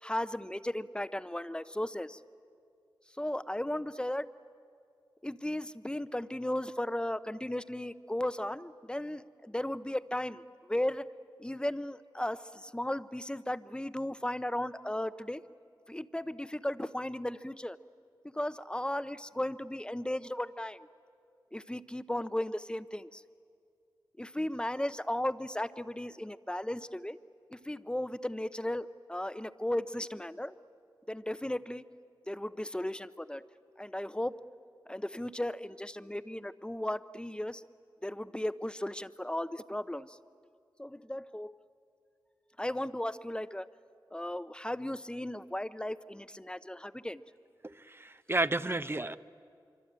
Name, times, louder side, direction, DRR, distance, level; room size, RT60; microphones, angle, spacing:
voice 1, 0.0-2.2 3.2-4.3 5.2-11.1 11.4-15.4 15.9-17.8 18.2-20.9 21.5-23.2 24.2-27.2 27.5-30.5 31.1-31.8 32.3-33.4 33.8-34.4 34.9-37.6 38.0-40.2 40.8-41.5 42.6-43.7 44.1-47.2, left 1 dB, 10° left, 13 dB, 0.8 m, -35 dB
voice 2, 47.6-49.2, right 2 dB, 30° right, 12 dB, 0.8 m, -32 dB
25.0 x 24.5 x 8.9 m, 2.3 s
cardioid pair, 50°, 8 cm